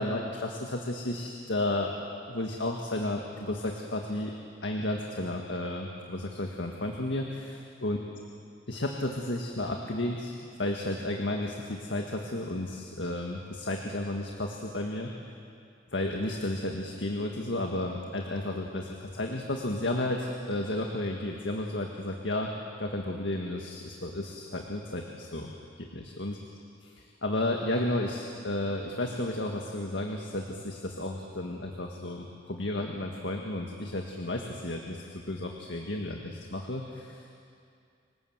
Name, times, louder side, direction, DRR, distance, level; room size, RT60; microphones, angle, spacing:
voice 1, 0.0-1.9 2.3-4.3 4.6-8.0 8.7-10.3 10.6-15.1 15.9-22.5 22.8-25.5 25.8-26.4 27.2-37.3, left 1 dB, 70° left, 1 dB, 1.8 m, -32 dB
27.0 x 19.0 x 8.0 m, 2.4 s
head